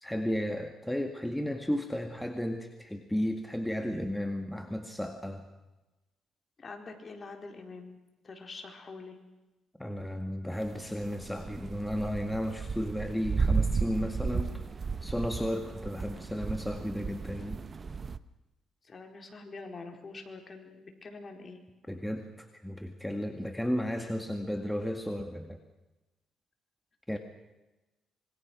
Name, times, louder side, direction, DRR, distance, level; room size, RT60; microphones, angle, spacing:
voice 1, 0.0-5.5 9.8-14.6 15.0-17.6 21.9-25.6 27.1-27.2, equal, 5° left, 5 dB, 2.1 m, -34 dB
voice 2, 6.6-8.0 8.2-9.2 18.8-21.6, left 3 dB, 35° left, 3 dB, 4.6 m, -45 dB
sound 1, 10.5-18.2, right 5 dB, 40° right, 1.0 m, -34 dB
26.5 x 23.5 x 6.3 m, 1.1 s
cardioid pair, 90°, 0 cm